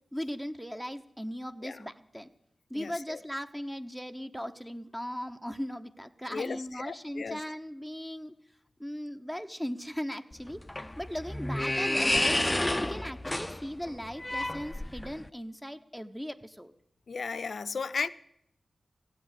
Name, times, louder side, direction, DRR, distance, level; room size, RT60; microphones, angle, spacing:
voice 1, 0.1-2.3 2.7-8.3 8.8-10.6 11.0-12.5 12.8-16.7, equal, 5° right, 0.9 m, -38 dB
voice 2, 2.7-3.2 6.3-7.4 17.1-18.1, left 5 dB, 75° left, 0.5 m, -35 dB
sound 1, 10.3-15.3, left 1 dB, 20° left, 0.5 m, -30 dB
15.0 x 7.9 x 8.3 m
cardioid pair, 45°, 0 cm